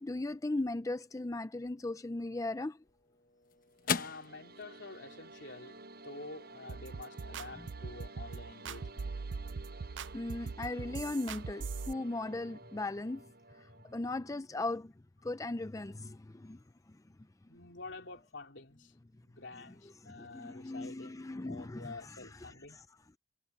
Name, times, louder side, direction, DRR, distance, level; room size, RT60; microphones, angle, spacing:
voice 1, 0.0-2.8 10.1-13.3 13.6-14.9 15.2-16.6 16.9-17.0 20.0-22.3 22.7-22.8, left 2 dB, 20° left, 0.5 m, -38 dB
sound 1, 2.6-11.1, left 6 dB, 50° left, 1.0 m, -44 dB
voice 2, 3.8-5.8 6.0-9.1 17.5-18.9 19.2-22.8, left 3 dB, 70° left, 3.2 m, -48 dB
sound 2, 3.8-14.0, right 3 dB, 55° right, 7.6 m, -53 dB
sound 3, 6.7-11.9, right 4 dB, 80° right, 0.5 m, -41 dB
head